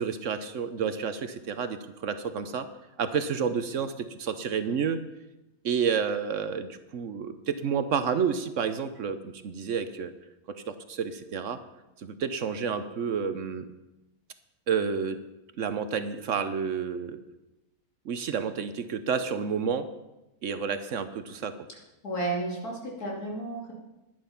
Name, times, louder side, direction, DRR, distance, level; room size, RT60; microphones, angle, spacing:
voice 1, 0.0-2.7 3.0-5.0 5.6-10.1 10.5-11.6 12.0-13.7 14.7-15.2 15.6-17.2 18.1-19.9 20.4-21.5, right 6 dB, 60° right, 10 dB, 1.0 m, -30 dB
voice 2, 22.0-23.7, right 2 dB, 80° left, -3 dB, 3.4 m, -32 dB
11.0 x 10.5 x 5.7 m, 0.98 s
omnidirectional pair, 1.6 m